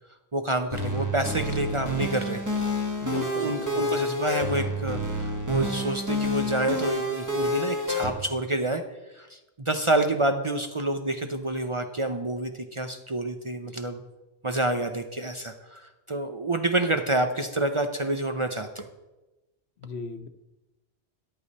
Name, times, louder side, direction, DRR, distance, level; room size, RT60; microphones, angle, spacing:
voice 1, 0.3-2.4 3.3-8.8 9.1-14.0 14.4-18.9, right 2 dB, 35° right, 6 dB, 0.7 m, -28 dB
sound 1, 0.7-8.1, equal, 15° right, 1.5 m, -29 dB
voice 2, 3.0-3.9 19.8-20.3, left 4 dB, 70° left, 8 dB, 1.1 m, -36 dB
14.0 x 10.5 x 4.2 m, 1.0 s
omnidirectional pair, 1.2 m